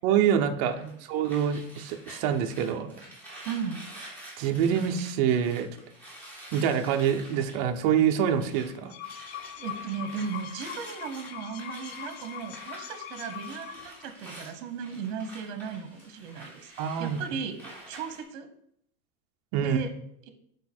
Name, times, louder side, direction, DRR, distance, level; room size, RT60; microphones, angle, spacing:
voice 1, 0.0-0.8 1.1-3.1 4.4-5.7 6.5-8.9 16.8-17.2 19.5-19.8, right 8 dB, 30° right, 6 dB, 0.4 m, -26 dB
sound 1, 0.8-8.7 9.0-18.2, right 1 dB, 5° left, 1.3 m, -48 dB
voice 2, 3.4-3.8 9.6-17.6 17.9-18.5 19.6-19.9 20.2-20.3, right 6 dB, 55° right, 9 dB, 0.9 m, -36 dB
sound 2, 8.7-14.1, left 10 dB, 50° left, 0.5 m, -42 dB
6.5 x 4.8 x 4.2 m, 0.70 s
supercardioid pair, 175°, 40 cm